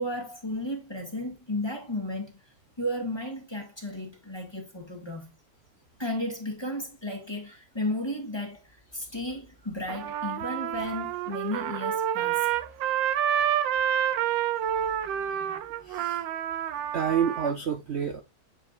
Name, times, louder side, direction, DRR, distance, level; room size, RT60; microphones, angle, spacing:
voice 1, 0.0-2.3 2.8-5.3 6.0-12.5 15.1-15.6, left 1 dB, 15° left, 1.6 m, -34 dB
Trumpet, 9.9-17.5, right 10 dB, 75° right, 1.3 m, -28 dB
voice 2, 15.8-16.2 16.9-18.2, right 8 dB, 60° right, 0.7 m, -28 dB
8.9 x 4.8 x 2.5 m
omnidirectional pair, 2.2 m